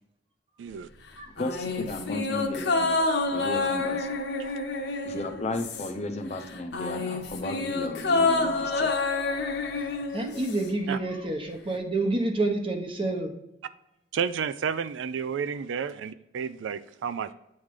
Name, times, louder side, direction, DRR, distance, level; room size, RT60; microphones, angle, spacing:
sound 1, 1.4-6.1 6.4-10.7 11.0-11.1, left 3 dB, 70° left, 0.8 m, -28 dB
voice 1, 1.4-2.9 3.3-4.1 5.0-9.0, left 2 dB, 35° left, 5 dB, 0.6 m, -34 dB
voice 2, 10.1-13.3, right 2 dB, 30° right, 3 dB, 0.9 m, -28 dB
voice 3, 14.1-17.3, right 6 dB, 85° right, 14 dB, 0.3 m, -31 dB
8.6 x 3.2 x 3.7 m, 0.86 s
head